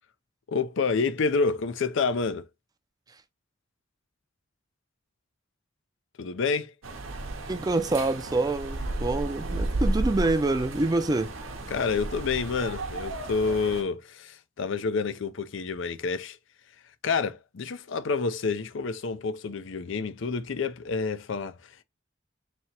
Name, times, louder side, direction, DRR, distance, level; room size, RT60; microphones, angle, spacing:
voice 1, 0.5-2.5 6.2-6.7 11.7-16.4 17.0-21.8, left 4 dB, 70° left, 0.5 m, -28 dB
sound 1, 6.8-13.8, right 2 dB, 85° right, 0.8 m, -33 dB
voice 2, 7.5-11.3, right 2 dB, 20° right, 0.5 m, -26 dB
3.3 x 2.8 x 4.3 m
head